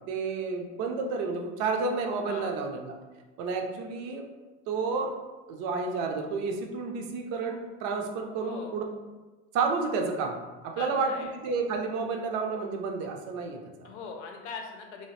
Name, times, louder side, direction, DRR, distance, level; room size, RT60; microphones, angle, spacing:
voice 1, 0.0-3.0 3.4-4.2 4.7-5.1 5.5-8.8 9.5-10.4 10.6-11.1 11.4-13.9, right 4 dB, 45° right, 3 dB, 0.5 m, -30 dB
voice 2, 8.4-8.7 10.8-11.3 13.8-15.1, left 5 dB, 90° left, 3 dB, 0.7 m, -40 dB
2.8 x 2.4 x 3.1 m, 1.2 s
supercardioid pair, 145°, 35 cm